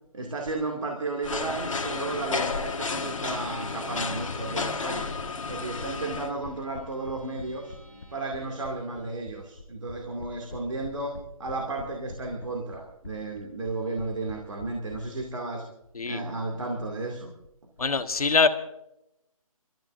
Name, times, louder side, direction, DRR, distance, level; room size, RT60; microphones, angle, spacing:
voice 1, 0.1-5.1 5.5-7.7 8.1-15.7 16.1-17.3, right 3 dB, 60° right, 1 dB, 2.4 m, -33 dB
sound 1, 1.2-6.3, left 4 dB, 60° left, 1.7 m, -32 dB
sound 2, 1.3-9.2, right 1 dB, 30° right, 6.3 m, -53 dB
sound 3, 5.2-15.0, left 4 dB, 40° left, 1.1 m, -43 dB
voice 2, 15.9-16.2 17.8-18.5, left 4 dB, 80° left, 8 dB, 1.4 m, -23 dB
30.0 x 13.5 x 2.6 m, 0.84 s
hypercardioid pair, 175°, 19 cm